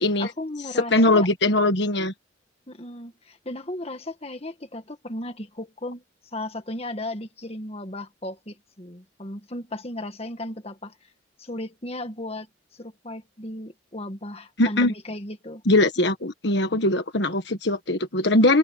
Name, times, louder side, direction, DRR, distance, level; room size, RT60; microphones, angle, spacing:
voice 1, 0.2-1.3 2.7-6.0 6.3-10.9 11.4-12.5 12.7-15.6, left 1 dB, 30° left, 2.0 m, -35 dB
voice 2, 0.9-2.1 14.6-14.9 15.7-18.6, left 2 dB, 60° left, 1.6 m, -21 dB
open air
head